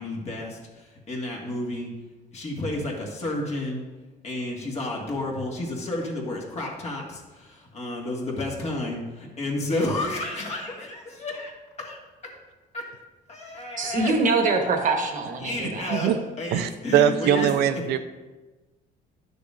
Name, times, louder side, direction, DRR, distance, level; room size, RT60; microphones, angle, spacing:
voice 1, 0.0-1.9 2.3-3.8 4.2-11.5 11.8-12.0 12.2-12.3 12.7-12.9 13.3-14.1 15.4-16.1 16.4-17.5, left 2 dB, 40° left, -2 dB, 1.9 m, -31 dB
voice 2, 13.8-15.9, right 3 dB, 50° right, 4 dB, 1.3 m, -24 dB
voice 3, 16.5-18.0, right 10 dB, 80° right, 9 dB, 0.5 m, -21 dB
10.5 x 6.6 x 2.6 m, 1.2 s
cardioid pair, 110°, 17 cm